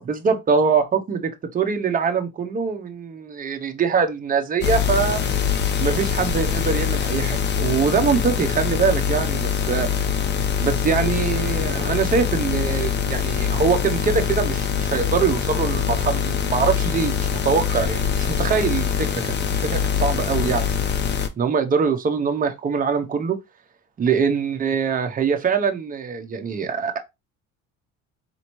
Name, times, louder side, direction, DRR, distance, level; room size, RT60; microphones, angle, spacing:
voice 1, 0.1-5.2 5.8-9.9 10.6-20.7 21.4-23.4 24.0-27.0, right 6 dB, 30° right, 0.7 m, -23 dB
sound 1, 4.6-21.3, left 7 dB, 35° left, 0.6 m, -23 dB
4.3 x 2.7 x 3.0 m
cardioid pair, 125°, 30 cm